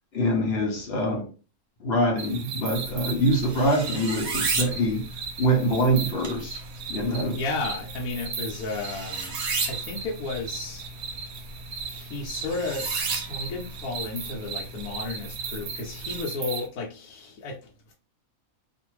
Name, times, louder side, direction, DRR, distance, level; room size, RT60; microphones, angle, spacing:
voice 1, 0.1-1.3 1.8-5.0 5.4-6.6 6.9-7.4, equal, 55° left, 0.8 m, -24 dB
sound 1, 2.2-16.7, right 5 dB, 85° right, 1.1 m, -38 dB
sound 2, 2.8-16.2, right 4 dB, 60° right, 0.9 m, -35 dB
voice 2, 7.1-10.9 11.9-12.9 13.3-17.9, left 3 dB, 75° left, 1.1 m, -33 dB
2.5 x 2.5 x 3.0 m
omnidirectional pair, 1.6 m